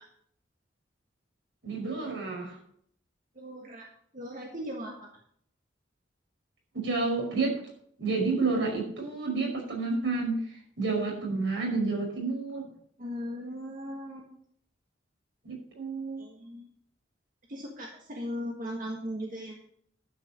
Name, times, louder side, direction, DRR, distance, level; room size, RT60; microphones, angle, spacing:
voice 1, 1.6-2.6 6.7-7.6 8.0-12.6 15.4-16.2, right 3 dB, 80° right, -1 dB, 5.4 m, -30 dB
voice 2, 3.3-3.9 4.1-5.1 13.0-14.4 16.2-16.7 17.5-19.6, equal, 50° right, 0 dB, 1.5 m, -38 dB
11.5 x 5.8 x 7.4 m, 0.66 s
head